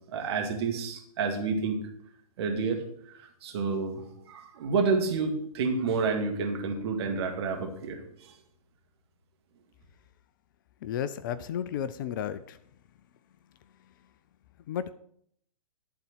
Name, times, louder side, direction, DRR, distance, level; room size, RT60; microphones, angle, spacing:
voice 1, 0.1-1.8 2.4-2.8 3.1-8.3, right 4 dB, 45° right, 4 dB, 2.0 m, -29 dB
voice 2, 10.8-12.6 14.7-14.9, left 9 dB, 35° left, 14 dB, 0.4 m, -33 dB
11.5 x 4.2 x 8.1 m, 0.68 s
figure-of-eight pair, 120°, 19 cm